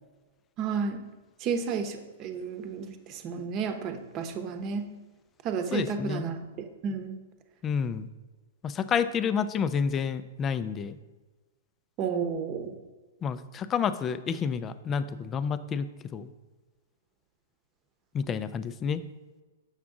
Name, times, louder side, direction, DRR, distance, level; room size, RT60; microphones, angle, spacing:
voice 1, 0.6-1.0 1.4-4.9 5.4-6.5 6.8-7.2 12.0-12.7, right 6 dB, 35° right, 7 dB, 0.9 m, -32 dB
voice 2, 5.7-6.3 7.6-8.1 8.6-11.0 13.2-16.3 18.1-19.0, left 6 dB, 25° left, 13 dB, 0.4 m, -29 dB
7.1 x 5.9 x 3.8 m, 1.3 s
hypercardioid pair, 130°, 0 cm